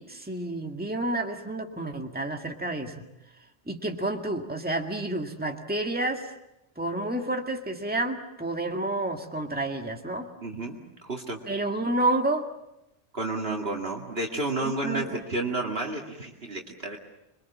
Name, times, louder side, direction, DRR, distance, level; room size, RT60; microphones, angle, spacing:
voice 1, 0.0-3.0 3.7-6.3 6.8-10.3 11.5-12.5 14.6-15.2, right 2 dB, 10° right, 3 dB, 2.0 m, -30 dB
voice 2, 10.4-10.8 11.0-11.4 13.1-17.0, right 2 dB, 60° right, 0 dB, 2.4 m, -31 dB
26.5 x 23.5 x 7.3 m, 0.88 s
omnidirectional pair, 1.2 m